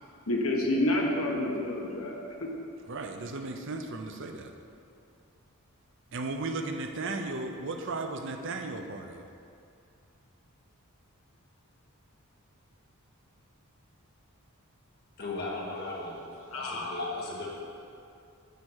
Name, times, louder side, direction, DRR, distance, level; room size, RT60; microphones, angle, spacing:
voice 1, 0.3-2.5 16.5-17.1, left 1 dB, 70° left, -1 dB, 1.2 m, -29 dB
voice 2, 2.9-4.5 6.1-9.3, right 3 dB, 55° right, 5 dB, 0.6 m, -35 dB
voice 3, 15.2-17.5, left 2 dB, 45° left, -4 dB, 1.5 m, -38 dB
9.3 x 4.2 x 6.3 m, 2.5 s
head